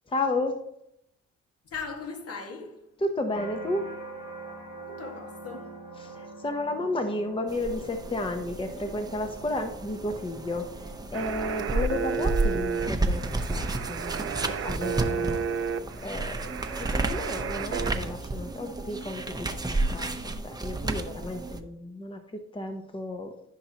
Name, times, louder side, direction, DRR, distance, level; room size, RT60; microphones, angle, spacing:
voice 1, 0.1-0.6 3.0-3.9 6.0-15.7 16.0-23.3, left 2 dB, 15° left, 0.9 m, -33 dB
voice 2, 1.6-2.9 4.9-5.8, left 4 dB, 50° left, 1.8 m, -39 dB
sound 1, 3.3-18.5 19.0-19.5, right 3 dB, 80° left, 2.8 m, -46 dB
sound 2, 7.5-21.6, right 2 dB, 15° right, 0.9 m, -32 dB
sound 3, 11.1-17.9, right 6 dB, 50° right, 0.8 m, -32 dB
14.5 x 5.5 x 3.0 m
cardioid pair, 90°, 30 cm